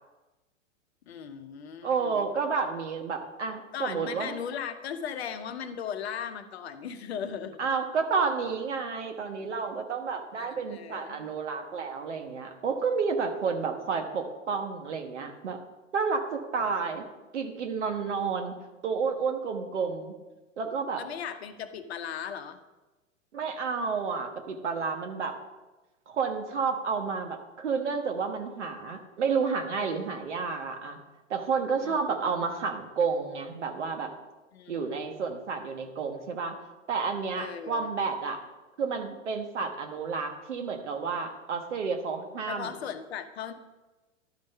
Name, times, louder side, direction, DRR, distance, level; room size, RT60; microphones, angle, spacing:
voice 1, 1.1-2.3 3.7-7.7 10.4-11.2 21.0-22.6 31.8-32.2 34.5-35.1 37.4-37.9 42.5-43.5, left 8 dB, 55° left, 9 dB, 0.9 m, -38 dB
voice 2, 1.8-4.3 7.6-15.6 15.9-17.0 17.3-18.6 18.8-20.1 20.6-21.0 23.3-25.4 26.1-31.0 31.3-34.1 34.7-36.6 36.9-38.4 38.8-42.7, right 5 dB, 65° right, 5 dB, 1.4 m, -30 dB
12.0 x 5.4 x 5.5 m, 1.1 s
figure-of-eight pair, 100°, 38 cm